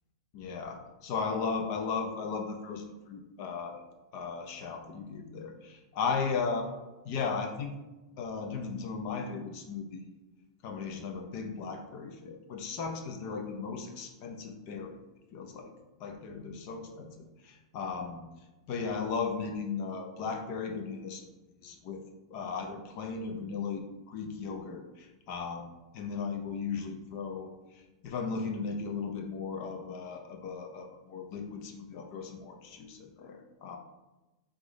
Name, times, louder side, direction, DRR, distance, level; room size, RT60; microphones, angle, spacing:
voice 1, 0.3-3.8 4.1-6.7 7.0-7.7 8.2-10.1 10.6-15.0 15.3-15.7 16.0-17.1 17.4-18.3 18.7-21.4 21.6-22.0 22.3-27.5 28.0-33.8, left 5 dB, 45° left, 4 dB, 0.6 m, -36 dB
3.6 x 3.5 x 3.9 m, 1.1 s
supercardioid pair, 150°, 3 cm